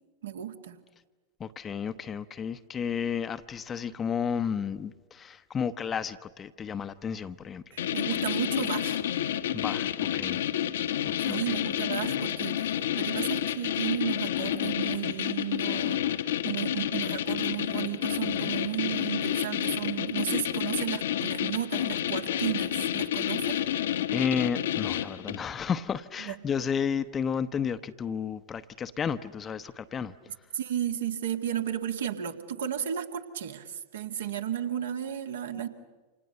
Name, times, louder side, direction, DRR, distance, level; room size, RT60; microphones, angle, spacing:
voice 1, 0.2-0.8 7.7-9.0 11.2-23.6 26.2-26.4 30.5-35.7, right 10 dB, 60° right, 2.2 m, -33 dB
voice 2, 1.4-7.6 9.5-10.4 11.2-11.6 24.1-30.1, left 7 dB, 20° left, 1.0 m, -32 dB
sound 1, 7.8-25.5, left 11 dB, 60° left, 1.2 m, -30 dB
29.0 x 27.5 x 6.8 m
figure-of-eight pair, 90°, 0 cm